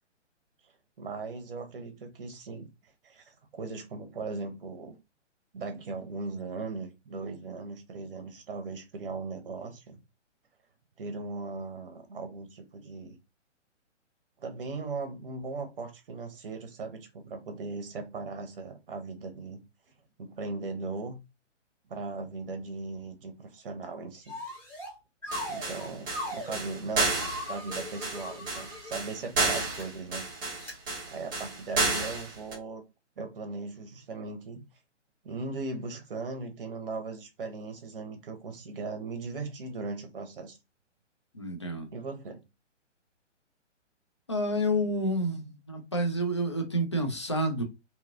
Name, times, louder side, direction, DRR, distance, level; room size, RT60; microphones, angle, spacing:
voice 1, 1.0-5.0 5.5-10.0 11.0-13.2 14.4-19.6 20.2-21.2 21.9-24.4 25.5-27.1 27.5-30.3 31.1-32.8 33.2-34.6 35.2-40.6 41.9-42.4, right 3 dB, 45° right, 0.8 m, -38 dB
sound 1, 24.3-24.9 25.2-26.6 27.1-29.0 29.6-29.8 30.6-30.7, left 1 dB, 5° left, 1.0 m, -39 dB
sound 2, 25.3-32.5, right 3 dB, 15° right, 0.6 m, -31 dB
voice 2, 41.3-41.9 44.3-47.6, equal, 25° left, 0.3 m, -29 dB
2.9 x 2.4 x 2.5 m
figure-of-eight pair, 130°, 37 cm